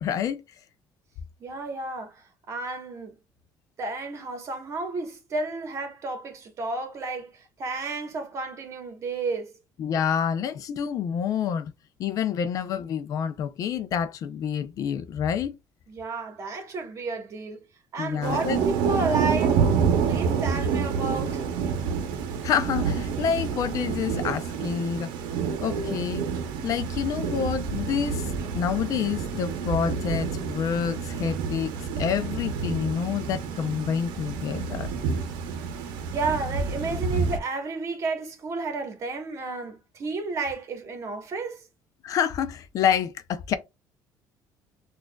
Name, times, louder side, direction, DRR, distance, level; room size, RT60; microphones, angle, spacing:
voice 1, 0.0-0.4 9.8-11.7 12.0-15.5 18.0-18.6 22.4-25.1 25.6-26.3 26.6-28.3 28.5-34.9 42.0-43.5, left 8 dB, 50° left, 0.4 m, -28 dB
voice 2, 1.4-3.2 3.8-9.5 15.9-17.6 17.9-19.6 20.1-21.6 36.1-41.6, right 3 dB, 40° right, 1.1 m, -32 dB
Thunder / Rain, 18.2-37.4, right 6 dB, 85° right, 0.7 m, -28 dB
6.1 x 2.4 x 2.2 m
cardioid pair, 125°, 7 cm